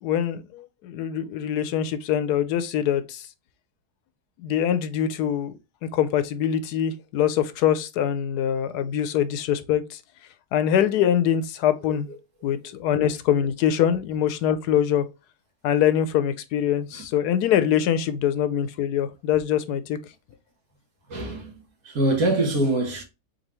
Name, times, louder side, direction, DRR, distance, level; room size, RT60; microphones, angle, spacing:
voice 1, 0.0-3.3 4.4-5.5 5.8-10.0 10.5-12.1 12.4-15.1 15.6-20.0, left 9 dB, 90° left, 1.2 m, -23 dB
voice 2, 21.1-23.0, right 2 dB, 65° right, 1.8 m, -25 dB
4.0 x 3.9 x 3.0 m
omnidirectional pair, 1.6 m